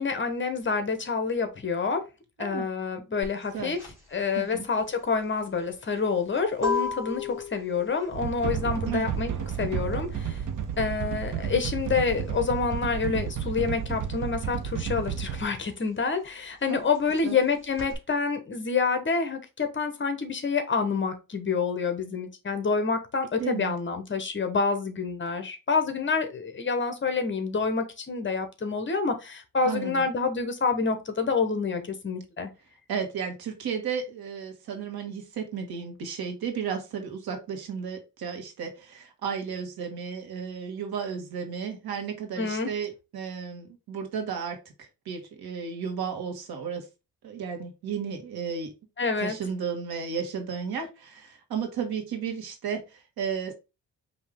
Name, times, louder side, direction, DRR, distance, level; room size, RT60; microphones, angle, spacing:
voice 1, 0.0-2.0 2.4-3.8 4.1-9.3 9.6-10.4 10.8-32.5 42.4-42.7 49.0-49.4, left 5 dB, 30° left, 0.9 m, -28 dB
voice 2, 2.4-2.7 3.5-3.7 4.3-4.7 8.9-9.1 16.7-16.8 17.2-17.4 23.4-23.8 29.6-30.1 32.9-46.9 47.2-48.7 49.2-53.5, right 6 dB, 85° right, 1.4 m, -33 dB
sound 1, 3.2-13.5 13.7-17.9, left 5 dB, 5° right, 2.7 m, -36 dB
sound 2, 8.1-15.5, right 8 dB, 55° right, 0.7 m, -32 dB
5.2 x 2.8 x 3.5 m
cardioid pair, 120°, 36 cm